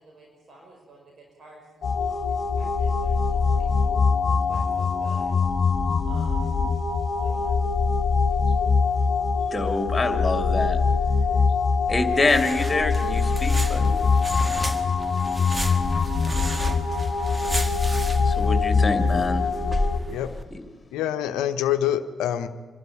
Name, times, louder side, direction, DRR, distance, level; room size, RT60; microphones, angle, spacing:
voice 1, 0.0-3.7 4.2-5.3 6.0-6.6 7.2-7.6, right 2 dB, 55° right, -1 dB, 5.3 m, -50 dB
sound 1, 1.8-20.0, left 4 dB, 50° left, 1.4 m, -23 dB
voice 2, 9.5-10.8 11.9-14.0 18.3-19.4, left 3 dB, 25° left, 6 dB, 2.7 m, -25 dB
sound 2, 11.9-20.4, equal, 20° right, 1.9 m, -33 dB
voice 3, 20.9-22.5, left 11 dB, 75° left, 9 dB, 0.8 m, -25 dB
25.5 x 12.0 x 9.7 m, 1.4 s
hypercardioid pair, 40°, 0 cm